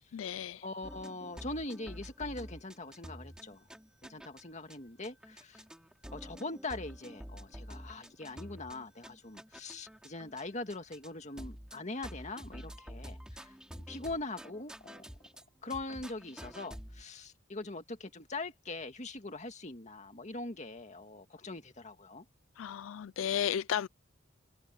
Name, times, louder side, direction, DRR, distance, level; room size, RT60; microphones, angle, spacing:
voice 1, 0.1-0.7 22.6-23.9, left 9 dB, 80° left, 0.4 m, -34 dB
voice 2, 0.6-3.6 4.0-5.6 6.1-15.1 15.6-22.2, left 2 dB, 35° left, 2.0 m, -42 dB
sound 1, 0.8-4.4 4.7-4.8 5.0-10.4 10.7-11.1 11.4-15.5 15.7-17.0, equal, 5° right, 2.6 m, -48 dB
head